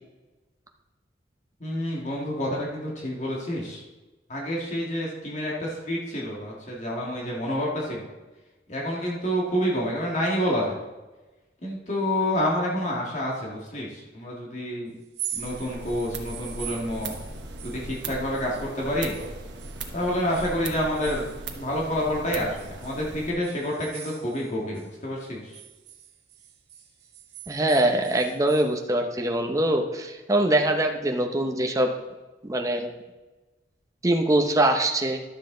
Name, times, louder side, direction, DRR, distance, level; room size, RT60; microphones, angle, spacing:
voice 1, 1.6-3.8 4.3-8.1 8.7-10.8 11.6-14.9 15.3-17.1 17.6-19.2 19.9-21.3 21.6-25.6, equal, 40° left, -3 dB, 1.9 m, -28 dB
sound 1, 15.0-19.3 19.6-22.1 22.6-24.9 25.2-28.7, right 10 dB, 65° right, 1.8 m, -42 dB
sound 2, 15.3-23.3, right 3 dB, 85° right, 1.1 m, -38 dB
voice 2, 27.5-31.9 32.4-32.9 34.0-35.2, right 1 dB, 20° right, 3 dB, 0.8 m, -23 dB
11.5 x 7.4 x 3.8 m, 1.1 s
head